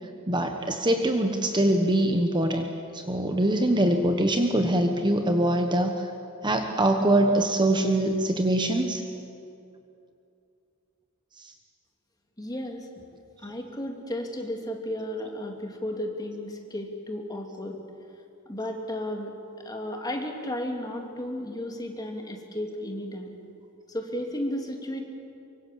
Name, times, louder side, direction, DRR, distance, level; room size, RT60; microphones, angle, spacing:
voice 1, 0.3-6.1 6.4-9.0 11.4-11.5, right 1 dB, 20° right, 5 dB, 1.2 m, -23 dB
voice 2, 12.4-12.9 13.4-17.8 18.5-19.3 19.6-23.3 23.9-25.0, left 1 dB, 20° left, 2 dB, 2.7 m, -33 dB
24.5 x 24.0 x 7.5 m, 2.6 s
head